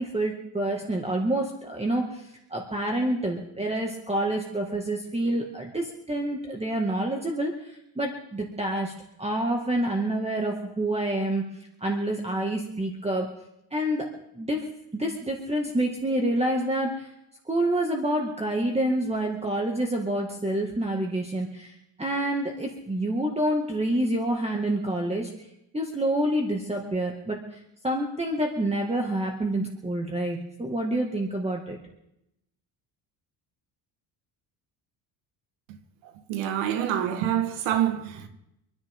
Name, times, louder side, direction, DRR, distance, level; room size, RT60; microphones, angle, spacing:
voice 1, 0.0-8.9 9.2-11.5 11.8-13.3 13.7-14.1 14.4-14.7 14.9-17.1 17.5-25.3 25.7-27.6 27.8-31.8, right 1 dB, 15° right, 2.1 m, -27 dB
voice 2, 36.0-38.3, right 10 dB, 85° right, 1.7 m, -27 dB
26.5 x 10.5 x 3.8 m
supercardioid pair, 85°, 45 cm